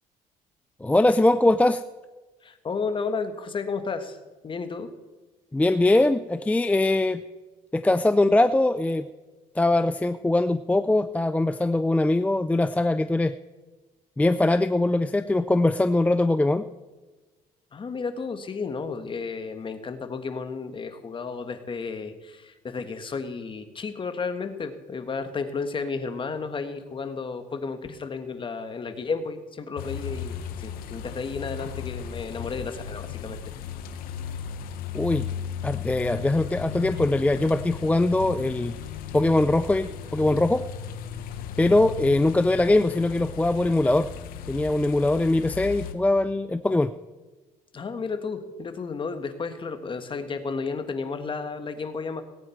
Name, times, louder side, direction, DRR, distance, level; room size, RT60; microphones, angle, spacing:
voice 1, 0.8-1.8 5.5-7.2 7.7-9.1 9.6-13.3 14.2-16.7 34.9-35.3 35.6-38.7 39.1-40.7 41.6-44.1 44.5-46.9, left 2 dB, 10° left, 10 dB, 0.4 m, -22 dB
voice 2, 2.4-4.2 4.4-4.9 17.7-33.4 47.7-52.2, left 4 dB, 35° left, 8 dB, 1.5 m, -32 dB
sound 1, 29.8-45.9, left 8 dB, 80° left, 1.1 m, -36 dB
19.0 x 8.9 x 4.5 m, 1.2 s
cardioid pair, 90°, 15 cm